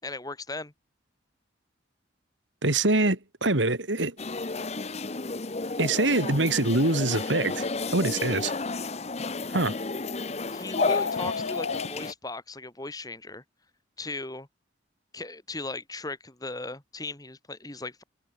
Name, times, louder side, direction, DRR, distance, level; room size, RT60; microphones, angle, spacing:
voice 1, 0.0-0.7 10.5-13.4 14.0-14.5 15.1-18.0, left 2 dB, 20° left, 2.7 m, -37 dB
voice 2, 2.6-4.1 5.8-7.7 7.9-8.5 9.5-9.8, right 2 dB, 80° right, 3.2 m, -24 dB
sound 1, 4.2-12.1, left 3 dB, 35° left, 1.0 m, -32 dB
sound 2, 10.7-11.9, left 5 dB, 80° left, 0.7 m, -29 dB
head